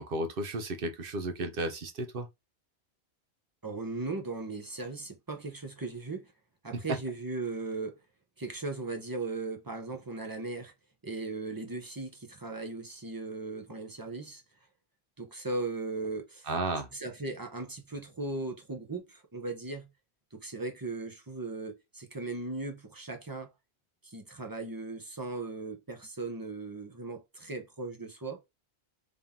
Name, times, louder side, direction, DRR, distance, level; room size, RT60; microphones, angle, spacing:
voice 1, 0.0-2.3 16.5-16.9, right 2 dB, 60° right, 0.9 m, -33 dB
voice 2, 3.6-6.3 6.6-8.0 8.4-10.7 11.0-14.4 15.2-16.5 16.9-19.9 20.3-23.5 24.0-28.4, right 3 dB, 20° right, 0.7 m, -37 dB
3.6 x 2.8 x 3.6 m
omnidirectional pair, 1.1 m